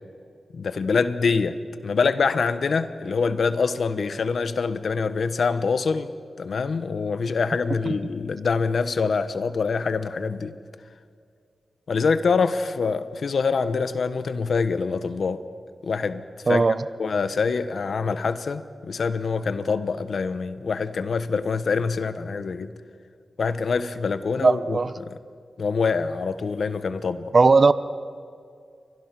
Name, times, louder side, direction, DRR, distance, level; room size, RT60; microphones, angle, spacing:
voice 1, 0.5-1.6 1.8-6.1 6.4-10.6 11.9-15.4 15.8-16.2 16.5-16.6 17.0-22.7 23.4-25.2 25.6-27.3, left 5 dB, 70° left, 1.1 m, -25 dB
voice 2, 16.5-16.8 24.4-24.9 27.3-27.7, right 4 dB, 45° right, 0.9 m, -17 dB
29.5 x 24.0 x 6.0 m
wide cardioid pair, 90°, 0 cm